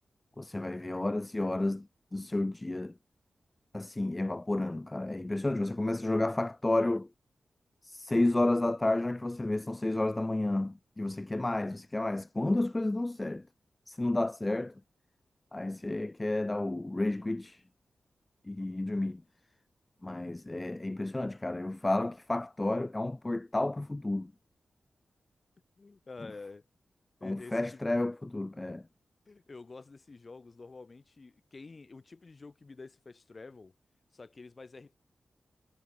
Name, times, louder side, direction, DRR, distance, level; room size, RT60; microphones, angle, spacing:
voice 1, 0.4-3.0 3.7-7.1 7.8-13.5 13.9-14.7 15.5-17.6 18.4-19.2 20.0-24.3 27.2-28.8, left 2 dB, 20° left, 0.4 m, -31 dB
voice 2, 25.8-26.6 27.2-27.8 29.3-33.7 34.1-35.0, left 3 dB, 35° left, 7.8 m, -48 dB
wide cardioid pair, 120°, 0 cm